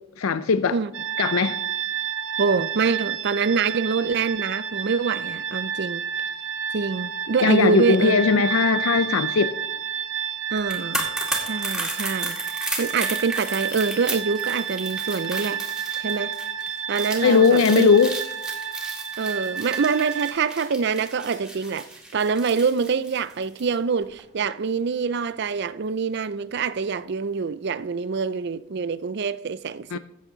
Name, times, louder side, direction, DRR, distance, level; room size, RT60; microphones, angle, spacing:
voice 1, 0.2-0.8 1.2-1.6 7.4-9.5 17.2-18.1 29.9-30.0, left 5 dB, 80° left, 0.5 m, -19 dB
sound 1, 0.9-20.4, right 8 dB, 70° right, 1.0 m, -30 dB
voice 2, 2.4-6.1 6.7-8.2 10.5-11.1 11.4-15.6 15.9-16.4 16.9-17.9 19.2-30.0, right 5 dB, 50° right, 0.4 m, -25 dB
sound 2, 10.6-23.7 24.0-24.2, right 1 dB, 5° right, 2.3 m, -34 dB
14.5 x 8.6 x 3.9 m
head